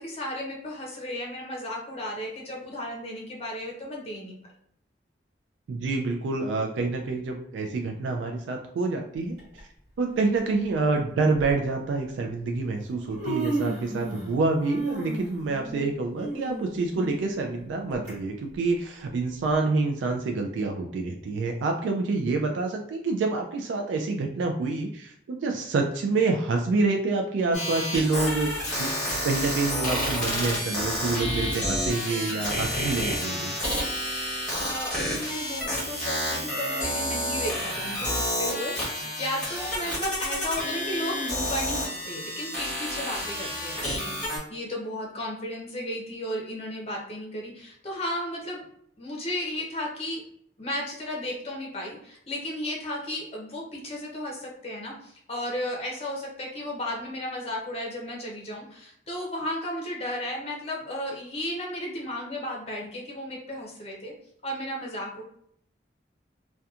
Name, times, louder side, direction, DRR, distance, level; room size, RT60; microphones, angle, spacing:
voice 1, 0.0-4.4 34.5-48.6 49.0-50.2 50.6-64.1 64.4-65.2, left 1 dB, 35° left, -1 dB, 0.6 m, -34 dB
voice 2, 5.7-9.4 10.0-28.9 29.2-33.5, right 3 dB, 85° right, 3 dB, 0.3 m, -27 dB
Human voice, 9.4-9.6 10.6-10.7 11.3-11.5 12.5-12.6 12.9-14.3 14.6-18.1 18.5-18.6 19.5-19.6, right 2 dB, 45° right, 1.4 m, -33 dB
sound 1, 27.5-44.4, equal, 5° left, 1.0 m, -30 dB
2.8 x 2.2 x 2.3 m, 0.70 s
head